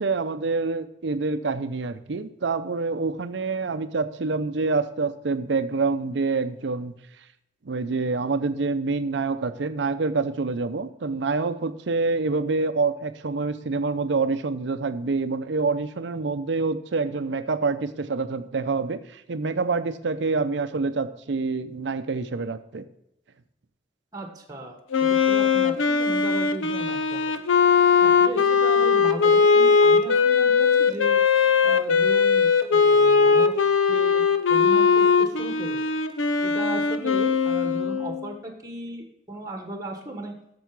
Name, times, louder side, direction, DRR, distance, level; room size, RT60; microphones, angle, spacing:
voice 1, 0.0-6.9 7.7-22.9, right 4 dB, 65° right, 12 dB, 0.6 m, -26 dB
voice 2, 24.1-27.3 28.0-31.2 31.6-33.5 33.9-35.8 36.4-40.3, right 1 dB, 20° right, 3 dB, 1.2 m, -36 dB
Wind instrument woodwind instrument, 24.9-38.3, left 5 dB, 85° left, 0.6 m, -20 dB
8.2 x 6.8 x 4.7 m, 0.81 s
head